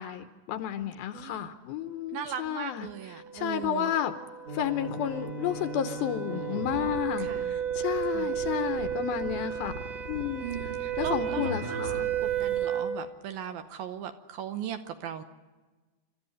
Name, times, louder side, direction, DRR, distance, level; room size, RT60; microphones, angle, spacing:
voice 1, 0.0-4.2 4.5-10.7 11.0-12.1, left 10 dB, 75° left, 2.5 m, -32 dB
voice 2, 1.1-1.5 2.1-3.9 7.2-7.4 8.1-8.3 10.4-11.8 12.4-15.2, right 9 dB, 75° right, 2.4 m, -38 dB
sound 1, 3.1-13.0, right 9 dB, 55° right, 2.3 m, -33 dB
sound 2, 4.5-12.6, right 1 dB, 30° right, 1.0 m, -40 dB
28.0 x 13.5 x 9.6 m
omnidirectional pair, 4.8 m